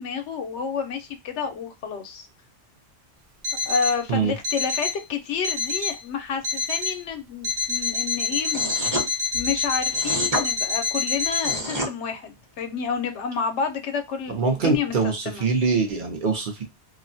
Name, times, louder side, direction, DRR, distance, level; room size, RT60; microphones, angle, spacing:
voice 1, 0.0-2.3 3.7-8.7 9.3-15.5, left 6 dB, 85° left, 7 dB, 0.9 m, -29 dB
Alarm, 3.4-4.0 4.4-5.0 5.4-6.0 6.4-7.0 7.4-11.6, left 4 dB, 80° right, 0.9 m, -27 dB
sound 1, 8.5-9.1 9.9-10.4 11.3-11.9, right 1 dB, 20° right, 0.8 m, -27 dB
voice 2, 14.3-16.6, right 4 dB, 55° right, 1 dB, 0.7 m, -23 dB
2.4 x 2.1 x 2.5 m, 0.23 s
omnidirectional pair, 1.2 m